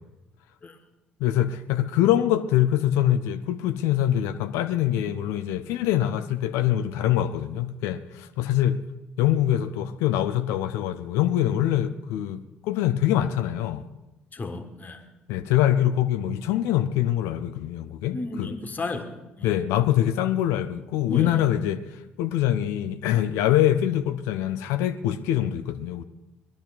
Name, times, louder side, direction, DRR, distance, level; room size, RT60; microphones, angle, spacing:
voice 1, 1.2-8.8 9.2-13.8 15.3-18.5 19.4-21.8 22.2-26.0, left 12 dB, 65° left, 0.6 m, -24 dB
voice 2, 14.3-15.0 18.1-19.5 21.1-21.4, left 2 dB, 30° left, 1.7 m, -33 dB
20.0 x 11.5 x 4.2 m
figure-of-eight pair, 50°, 5 cm